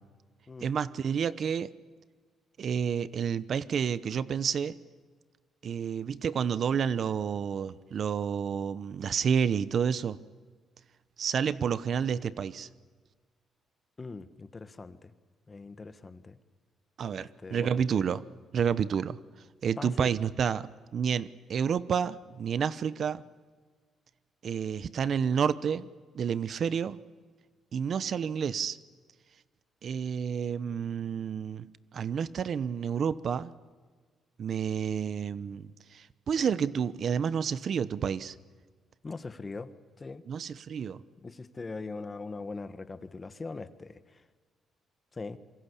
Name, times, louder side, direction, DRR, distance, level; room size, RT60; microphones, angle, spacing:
voice 1, 0.6-1.7 2.6-4.8 5.6-10.2 11.2-12.7 17.0-18.2 18.5-19.2 19.6-20.7 20.9-23.2 24.4-25.9 26.1-27.0 27.7-28.8 29.8-31.7 31.9-33.5 34.4-38.3 40.3-41.0, right 7 dB, 55° right, 16 dB, 0.9 m, -30 dB
voice 2, 14.0-15.1 15.5-16.4 17.2-17.8 19.8-20.1 39.0-39.7 40.0-40.2 41.2-44.2 45.1-45.4, left 3 dB, 30° left, 12 dB, 1.5 m, -41 dB
26.5 x 23.5 x 8.5 m, 1.5 s
cardioid pair, 90°, 0 cm